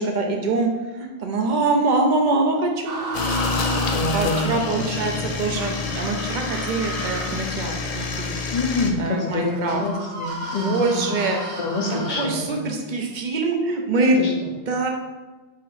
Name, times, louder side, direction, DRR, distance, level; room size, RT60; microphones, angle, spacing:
voice 1, 0.0-3.8 4.1-8.4 8.7-9.8 10.6-11.4 11.9-14.2 14.7-14.9, right 3 dB, 50° right, 2 dB, 0.6 m, -24 dB
sound 1, 2.9-4.5 5.5-12.3, right 2 dB, 75° right, 1.1 m, -34 dB
sound 2, 3.1-8.9, left 4 dB, 85° left, 0.3 m, -27 dB
voice 2, 3.9-5.1 8.5-11.2 11.6-12.7 14.2-14.5, left 2 dB, 45° left, 1 dB, 0.6 m, -27 dB
4.2 x 2.8 x 4.0 m, 1.2 s
omnidirectional pair, 1.2 m